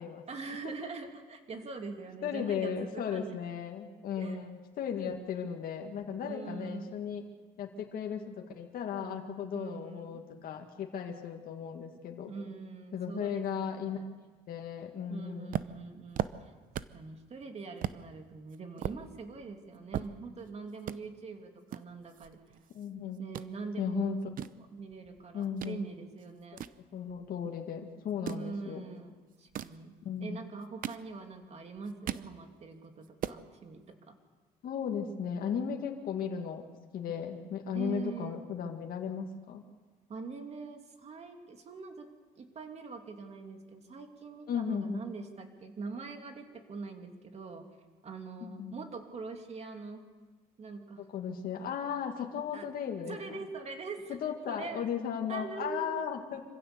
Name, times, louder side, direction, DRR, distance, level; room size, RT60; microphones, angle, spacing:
voice 1, 0.3-3.4 4.2-4.4 6.3-6.9 9.5-10.2 12.3-14.1 15.1-16.5 16.9-22.4 23.2-24.2 24.6-26.6 28.3-34.2 37.7-38.4 40.1-42.1 42.4-47.7 48.0-50.0 50.6-51.1 52.5-52.7 53.1-54.2 54.5-54.8 55.3-56.0, right 4 dB, 40° right, 5 dB, 2.8 m, -43 dB
voice 2, 2.2-7.2 7.6-12.3 12.9-14.0 14.5-15.5 22.7-23.2 23.8-24.2 25.3-25.8 26.5-26.6 26.9-28.8 30.1-30.4 34.6-36.6 36.9-39.6 44.5-45.0 48.4-48.7 51.0-53.2 54.1-56.4, left 7 dB, 60° left, 2 dB, 2.0 m, -36 dB
sound 1, 15.5-17.1 17.4-17.5 17.8-18.0 18.5-20.5 20.8-21.0 21.7-22.9 23.1-23.5 24.1-25.8 26.2-27.5 28.1-28.5 29.3-29.8 30.5-31.4 31.8-32.3 32.7-32.8 33.0-33.4, right 10 dB, 55° right, 0.7 m, -38 dB
26.0 x 16.0 x 6.9 m, 1.3 s
cardioid pair, 110°, 17 cm